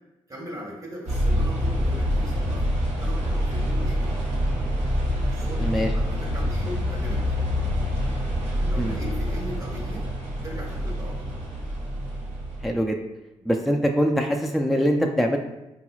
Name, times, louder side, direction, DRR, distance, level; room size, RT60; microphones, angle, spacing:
voice 1, 0.3-2.6 3.0-4.3 5.3-7.4 8.6-10.1 10.4-11.3 13.4-13.5, equal, 25° right, -4 dB, 1.2 m, -39 dB
sound 1, 1.1-12.7, equal, 65° right, 1.0 m, -26 dB
voice 2, 12.6-13.0 13.4-15.4, equal, ahead, 3 dB, 0.4 m, -23 dB
3.9 x 2.9 x 2.3 m, 0.97 s
hypercardioid pair, 45°, 13 cm